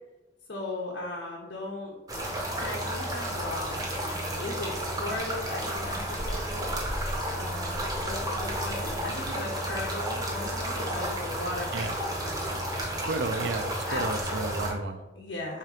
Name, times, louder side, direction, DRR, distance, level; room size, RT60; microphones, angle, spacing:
voice 1, 0.5-1.9 2.5-3.9 4.4-6.7 7.3-11.7 12.2-12.6 13.9-14.1 15.2-15.6, left 2 dB, 75° left, -3 dB, 0.7 m, -37 dB
sound 1, 2.1-14.7, right 1 dB, 20° right, 0.7 m, -32 dB
voice 2, 13.1-15.0, right 3 dB, 65° right, 8 dB, 0.4 m, -32 dB
3.7 x 3.0 x 4.8 m, 1.1 s
head